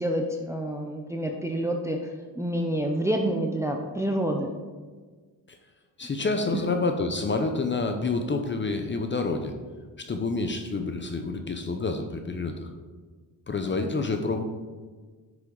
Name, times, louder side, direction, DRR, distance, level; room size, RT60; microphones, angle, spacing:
voice 1, 0.0-4.5, right 1 dB, 10° right, 2 dB, 0.6 m, -28 dB
voice 2, 6.0-9.5 10.0-12.7 13.5-14.4, left 3 dB, 30° left, 5 dB, 0.8 m, -28 dB
10.0 x 6.3 x 3.9 m, 1.4 s
cardioid pair, 125°, 38 cm